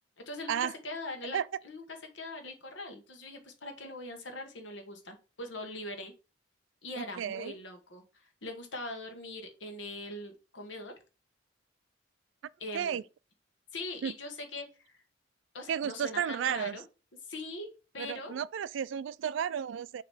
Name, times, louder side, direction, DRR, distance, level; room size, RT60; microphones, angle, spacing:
voice 1, 0.2-0.6 0.8-1.4 1.6-1.8 2.1-6.1 6.8-10.9 12.6-13.0 13.7-15.0 15.5-16.8 17.3-18.4, left 2 dB, 70° left, 1.3 m, -41 dB
voice 2, 7.0-7.6 12.7-13.0 14.0-14.1 15.7-16.8 18.0-20.0, right 8 dB, 70° right, 0.3 m, -33 dB
6.5 x 3.0 x 5.4 m
head